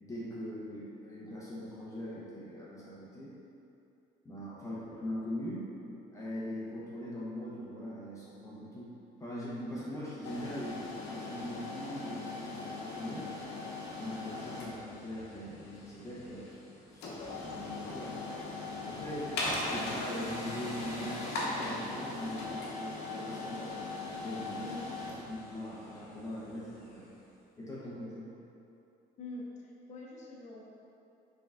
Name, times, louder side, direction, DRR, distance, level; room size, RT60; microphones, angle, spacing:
voice 1, 0.0-3.3 4.2-5.7 6.1-8.9 9.2-13.3 14.0-16.4 16.9-18.2 18.8-23.8 24.0-24.7 25.3-27.1 27.6-28.3, equal, 20° left, -8 dB, 0.8 m, -41 dB
sound 1, 10.2-27.1, left 2 dB, 80° left, 0.8 m, -40 dB
voice 2, 29.2-30.6, left 1 dB, 45° left, -3 dB, 0.8 m, -44 dB
5.0 x 3.4 x 2.4 m, 2.8 s
cardioid pair, 110°, 17 cm